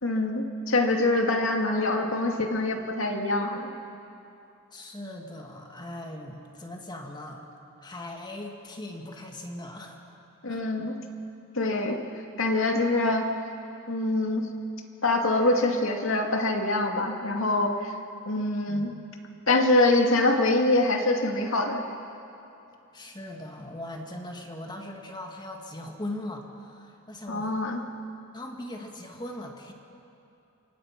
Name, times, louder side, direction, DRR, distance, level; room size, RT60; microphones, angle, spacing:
voice 1, 0.0-3.7 10.4-11.0 11.5-12.0 12.4-13.3 13.9-14.5 15.0-17.9 18.3-18.9 19.5-21.8 27.3-27.8, left 2 dB, 70° left, 3 dB, 2.4 m, -24 dB
voice 2, 4.7-7.5 7.8-10.0 10.5-10.7 18.7-18.9 22.9-27.5 28.3-29.7, left 1 dB, 20° left, 2 dB, 2.0 m, -39 dB
28.5 x 25.5 x 6.0 m, 2.8 s
head